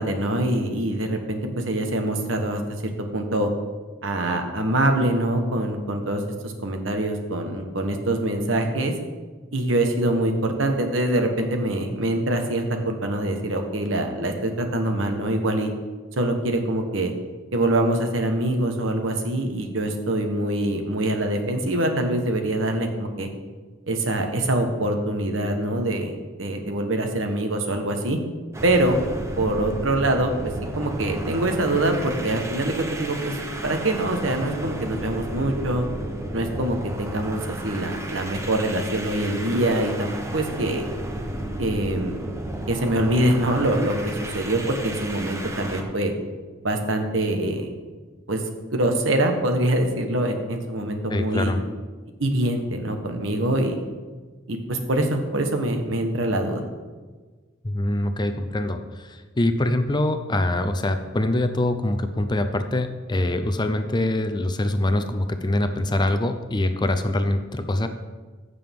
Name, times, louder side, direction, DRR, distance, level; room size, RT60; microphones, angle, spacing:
voice 1, 0.0-2.6 3.1-3.5 4.0-8.9 9.5-15.7 16.2-17.1 17.5-23.3 23.9-26.1 26.4-28.2 28.6-29.0 29.4-30.3 30.8-33.4 33.6-35.8 36.3-40.9 41.6-42.2 42.7-46.1 46.6-47.7 48.3-48.4 48.7-51.5 52.2-53.8 54.5-56.6, right 1 dB, 75° right, 4 dB, 1.3 m, -24 dB
sound 1, 28.5-45.9, right 1 dB, 15° right, 0.9 m, -33 dB
voice 2, 51.1-51.6 57.6-67.9, left 1 dB, 20° left, 8 dB, 0.6 m, -24 dB
15.0 x 6.8 x 3.7 m, 1.4 s
head